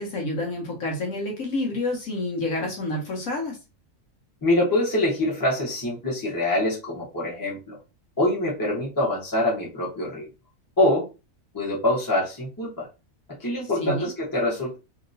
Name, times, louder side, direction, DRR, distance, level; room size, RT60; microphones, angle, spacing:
voice 1, 0.0-3.6 13.8-14.1, left 2 dB, 70° left, 0 dB, 1.4 m, -28 dB
voice 2, 4.4-7.8 8.2-10.3 10.8-11.1 11.5-12.9 13.4-14.8, left 1 dB, 15° left, -4 dB, 1.0 m, -24 dB
2.9 x 2.9 x 2.6 m, 0.28 s
omnidirectional pair, 1.5 m